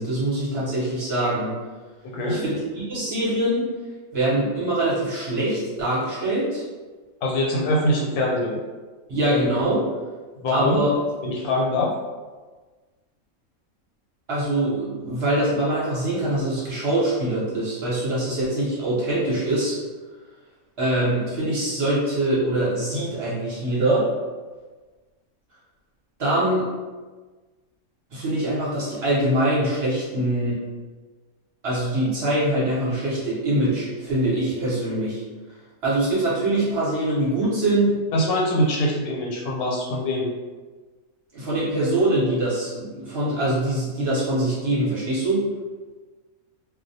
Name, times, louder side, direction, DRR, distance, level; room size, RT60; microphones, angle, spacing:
voice 1, 0.0-1.6 2.3-2.5 2.9-3.6 4.1-6.6 9.1-9.8 10.5-10.9 14.3-19.8 20.8-24.1 26.2-26.7 28.1-30.6 31.6-35.2 35.8-37.9 41.3-45.4, right 1 dB, 55° right, -8 dB, 0.8 m, -23 dB
voice 2, 2.0-2.4 7.2-8.6 10.4-10.8 11.2-11.9 38.1-40.3, left 1 dB, 85° left, -1 dB, 1.1 m, -23 dB
2.3 x 2.0 x 2.6 m, 1.3 s
omnidirectional pair, 1.5 m